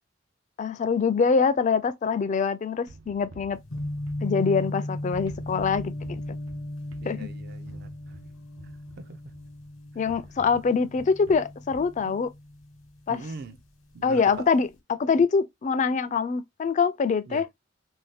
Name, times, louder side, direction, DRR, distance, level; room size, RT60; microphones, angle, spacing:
voice 1, 0.6-3.6 4.2-6.2 7.1-7.3 10.0-12.3 13.1-13.2 14.0-17.4, left 5 dB, 35° left, 0.3 m, -24 dB
sound 1, 2.9-4.8 5.1-9.6 10.1-12.0, right 3 dB, 85° right, 0.7 m, -49 dB
sound 2, 3.5-13.6 13.9-14.7, left 1 dB, 80° left, 0.9 m, -37 dB
voice 2, 7.0-8.2 9.0-9.2 12.0-12.2 13.1-13.6 13.9-14.5 17.3-17.5, right 3 dB, 50° right, 0.4 m, -41 dB
2.6 x 2.2 x 3.3 m
head